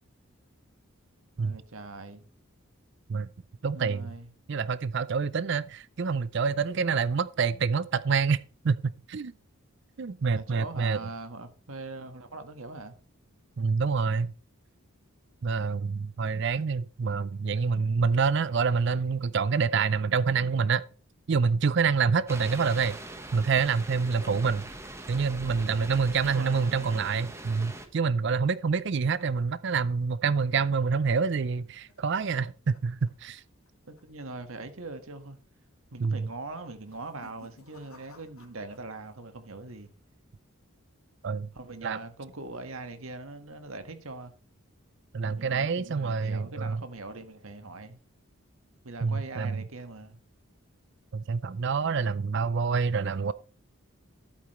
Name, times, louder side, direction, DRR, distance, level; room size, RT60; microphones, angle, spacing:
voice 1, 1.4-2.2 3.7-4.3 10.3-13.0 26.2-26.9 33.9-35.4 35.9-39.9 41.5-44.3 45.2-48.0 48.8-50.2, right 3 dB, 80° right, 1.6 m, -41 dB
voice 2, 3.6-4.1 4.5-8.4 8.6-9.3 10.0-11.0 13.6-14.3 15.4-20.8 21.3-23.0 23.3-24.6 25.1-33.4 36.0-36.3 41.2-41.5 41.8-42.0 45.1-46.8 49.0-49.6 51.1-53.3, right 5 dB, 55° right, 0.4 m, -27 dB
sound 1, 22.3-27.9, right 1 dB, 15° right, 1.2 m, -42 dB
sound 2, 31.6-33.7 34.0-34.3 34.6-34.7 35.5-35.9 36.7-39.2 39.4-40.0, left 3 dB, 85° left, 2.5 m, -58 dB
11.5 x 8.7 x 3.1 m
head